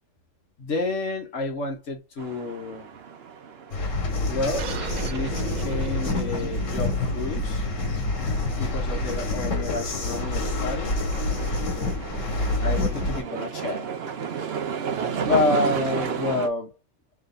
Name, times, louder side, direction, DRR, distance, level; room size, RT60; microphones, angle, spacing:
voice 1, 0.6-2.9 4.3-5.3 5.6-7.7 8.5-11.1 12.6-13.9 15.1-16.7, left 3 dB, 70° left, 1.5 m, -29 dB
sound 1, 2.2-16.5, right 7 dB, 60° right, 0.9 m, -34 dB
sound 2, 3.7-13.2, left 2 dB, 90° left, 1.6 m, -27 dB
sound 3, 4.6-9.6, right 9 dB, 75° right, 0.4 m, -38 dB
3.5 x 3.2 x 3.8 m
omnidirectional pair, 1.3 m